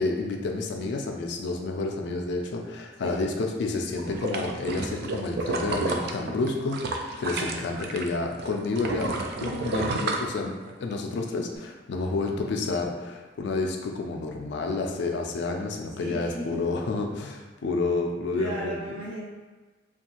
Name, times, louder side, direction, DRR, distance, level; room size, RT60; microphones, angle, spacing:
voice 1, 0.0-18.8, left 3 dB, 65° left, 2 dB, 0.4 m, -30 dB
sound 1, 4.0-8.1 8.4-10.9 11.3-11.4, right 3 dB, 60° right, 0.3 m, -30 dB
voice 2, 16.0-16.6 18.3-19.2, right 1 dB, 85° right, -9 dB, 1.2 m, -35 dB
2.5 x 2.3 x 2.8 m, 1.3 s
head